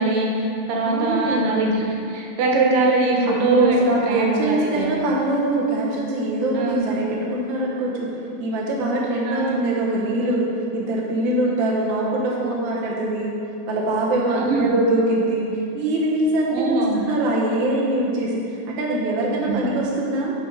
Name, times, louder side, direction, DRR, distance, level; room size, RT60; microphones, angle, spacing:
voice 1, 0.0-1.8 2.1-3.8 4.1-4.9 6.6-6.8 9.3-9.6 14.3-14.7 16.5-17.0 19.4-19.6, right 3 dB, 90° right, -1 dB, 2.6 m, -22 dB
voice 2, 0.8-1.5 3.3-8.1 8.4-10.5 10.7-13.4 13.7-20.3, right 1 dB, 55° right, -4 dB, 1.4 m, -23 dB
10.0 x 5.8 x 3.9 m, 2.7 s
omnidirectional pair, 3.7 m